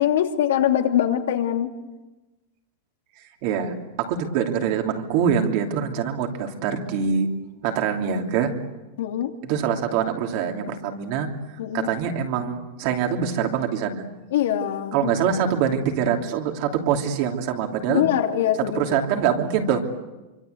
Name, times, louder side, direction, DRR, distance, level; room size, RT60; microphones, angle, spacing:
voice 1, 0.0-1.7 9.0-9.3 11.6-11.9 14.3-15.1 17.9-19.0, left 10 dB, 80° left, 4 dB, 2.9 m, -23 dB
voice 2, 3.4-7.3 7.6-8.5 9.4-11.3 11.7-14.1 14.9-18.1 18.7-19.8, right 7 dB, 45° right, 3 dB, 2.9 m, -24 dB
27.0 x 25.0 x 8.2 m, 1.1 s
supercardioid pair, 175°, 0 cm